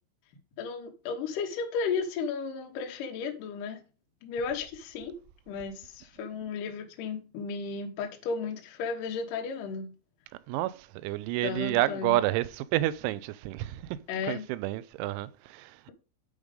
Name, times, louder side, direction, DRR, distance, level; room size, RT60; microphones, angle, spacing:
voice 1, 0.6-3.8 4.2-5.1 5.5-9.9 11.4-12.2 14.1-14.4, left 5 dB, 85° left, 1.9 m, -34 dB
voice 2, 10.5-14.0 14.3-15.9, right 16 dB, 85° right, 2.8 m, -30 dB
8.0 x 5.0 x 5.1 m
omnidirectional pair, 5.9 m